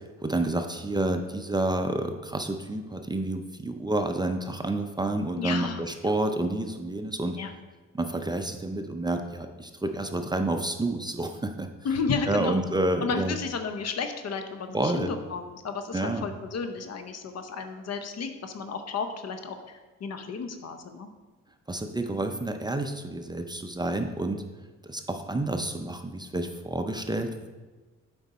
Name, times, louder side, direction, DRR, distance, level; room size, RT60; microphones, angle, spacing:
voice 1, 0.2-7.4 7.9-11.7 12.3-13.3 14.7-15.1 15.9-16.3 21.7-24.4 24.8-27.5, right 2 dB, 15° right, 6 dB, 0.5 m, -29 dB
voice 2, 5.4-6.1 7.4-7.5 11.8-12.6 13.0-21.1, left 5 dB, 55° left, 8 dB, 0.8 m, -33 dB
7.8 x 5.1 x 4.2 m, 1.3 s
cardioid pair, 90°, 30 cm